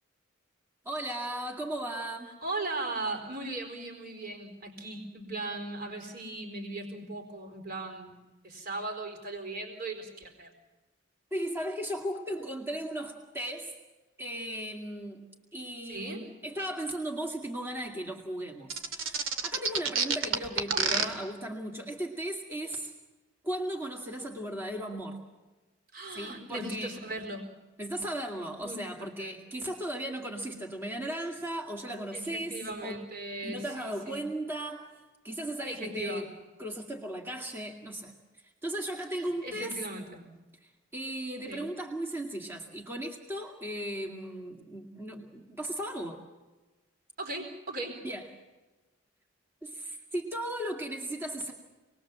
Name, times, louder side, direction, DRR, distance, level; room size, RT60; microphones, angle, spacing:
voice 1, 0.8-2.3 11.3-13.8 14.2-15.2 15.5-22.9 23.4-25.2 26.1-27.0 27.8-33.0 33.4-34.9 35.2-36.3 36.6-38.1 38.6-39.8 40.6-46.2 48.0-48.3 49.6-51.5, right 1 dB, 10° right, 1 dB, 2.3 m, -36 dB
voice 2, 2.4-8.1 8.4-10.5 15.9-16.2 20.7-21.1 25.9-27.4 28.6-29.4 32.1-34.2 35.7-36.3 39.1-40.2 41.5-41.7 47.2-48.0, right 2 dB, 50° right, 4 dB, 4.4 m, -38 dB
sound 1, 18.7-21.0, right 5 dB, 85° right, 2.6 m, -27 dB
27.5 x 21.0 x 7.4 m, 1.2 s
head